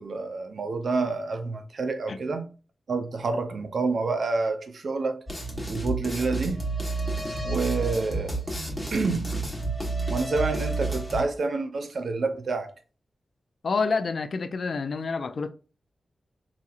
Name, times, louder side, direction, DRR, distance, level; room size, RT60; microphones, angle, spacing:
voice 1, 0.0-2.5 2.9-5.2 5.7-6.6 7.4-8.4 8.9-9.3 10.1-12.7, right 3 dB, 70° right, 0.6 m, -28 dB
sound 1, 5.3-11.2, right 2 dB, ahead, 1.3 m, -30 dB
voice 2, 13.6-15.5, left 4 dB, 65° left, 0.4 m, -28 dB
4.0 x 2.8 x 2.4 m
wide cardioid pair, 90°, 0 cm